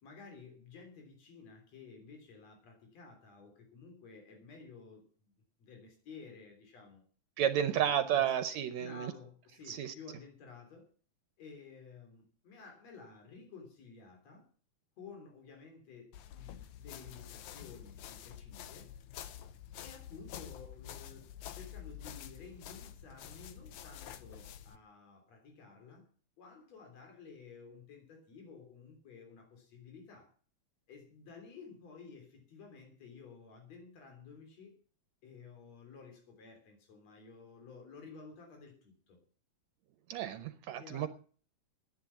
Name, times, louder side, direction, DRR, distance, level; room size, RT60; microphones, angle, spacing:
voice 1, 0.0-5.3 5.6-7.0 7.7-8.3 8.8-10.9 11.4-14.4 15.0-18.9 19.8-26.1 26.4-30.3 30.9-34.7 35.2-39.2 40.8-41.1, left 5 dB, 65° left, 3 dB, 4.6 m, -53 dB
voice 2, 7.4-9.1 9.7-9.9 40.1-41.1, right 10 dB, 75° right, 11 dB, 2.0 m, -32 dB
sound 1, 16.1-24.8, left 10 dB, 85° left, 2.3 m, -48 dB
12.0 x 10.5 x 7.0 m, 0.42 s
omnidirectional pair, 3.3 m